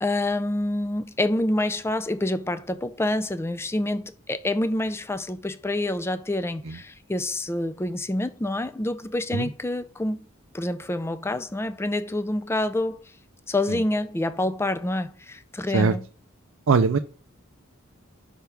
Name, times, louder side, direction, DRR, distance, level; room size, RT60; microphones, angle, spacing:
voice 1, 0.0-10.3 10.5-13.1 13.5-16.0, left 1 dB, 10° left, 0.4 m, -27 dB
voice 2, 16.7-17.0, right 5 dB, 65° right, 0.4 m, -21 dB
5.7 x 3.4 x 5.8 m
head